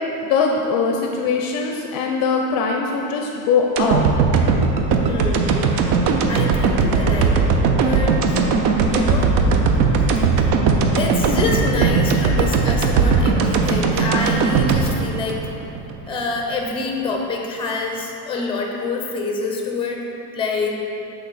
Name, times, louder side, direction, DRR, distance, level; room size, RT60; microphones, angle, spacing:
voice 1, 0.2-4.0, left 5 dB, 50° left, 2 dB, 0.5 m, -21 dB
sound 1, 3.8-16.0 16.4-16.5, right 4 dB, 55° right, 0.6 m, -18 dB
voice 2, 4.9-5.6 6.3-8.3 8.8-9.3 11.0-15.4 16.1-20.1 20.3-20.8, left 3 dB, 10° left, 1 dB, 0.6 m, -26 dB
7.7 x 3.4 x 4.0 m, 2.8 s
supercardioid pair, 125°, 48 cm